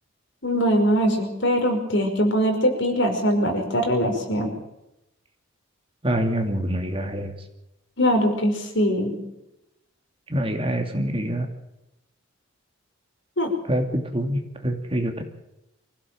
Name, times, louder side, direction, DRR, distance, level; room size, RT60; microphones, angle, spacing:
voice 1, 0.4-4.5 8.0-9.2 13.4-13.5, equal, 55° left, 4 dB, 5.3 m, -22 dB
voice 2, 6.0-7.3 10.3-11.5 13.7-15.2, right 1 dB, 25° right, 5 dB, 2.8 m, -25 dB
25.0 x 16.5 x 7.6 m, 0.88 s
head